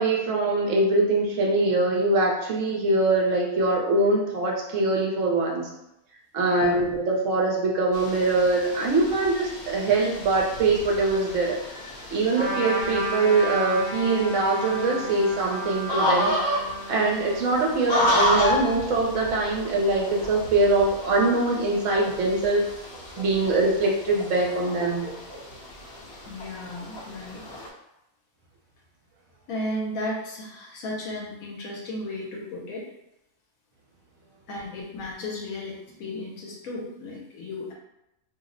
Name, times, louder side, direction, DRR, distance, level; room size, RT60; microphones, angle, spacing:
voice 1, 0.0-5.7 6.3-11.6 12.1-16.3 16.9-22.6 23.2-25.1, right 2 dB, 70° right, -1 dB, 1.0 m, -23 dB
voice 2, 6.4-6.8 26.3-27.4 29.5-32.8 34.5-37.7, left 1 dB, 80° left, -2 dB, 1.1 m, -34 dB
sound 1, 7.9-27.7, left 1 dB, 55° left, 0.9 m, -32 dB
Trumpet, 12.3-18.2, right 2 dB, 30° right, 0.6 m, -33 dB
2.8 x 2.0 x 3.7 m, 0.86 s
omnidirectional pair, 1.5 m